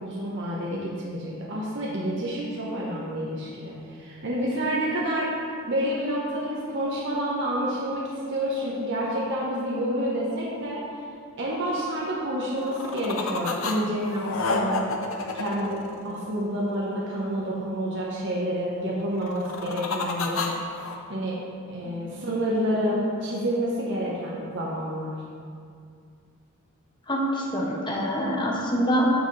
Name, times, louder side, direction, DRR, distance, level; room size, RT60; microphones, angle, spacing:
voice 1, 0.0-5.3 5.7-10.8 11.4-14.9 15.3-20.5 21.1-25.1, equal, 60° right, -5 dB, 1.2 m, -29 dB
sound 1, 12.6-13.8 14.0-16.5 19.2-21.0, left 3 dB, 70° left, 0.8 m, -30 dB
voice 2, 27.1-29.1, equal, 20° left, -3 dB, 1.2 m, -25 dB
9.1 x 6.8 x 3.3 m, 2.2 s
head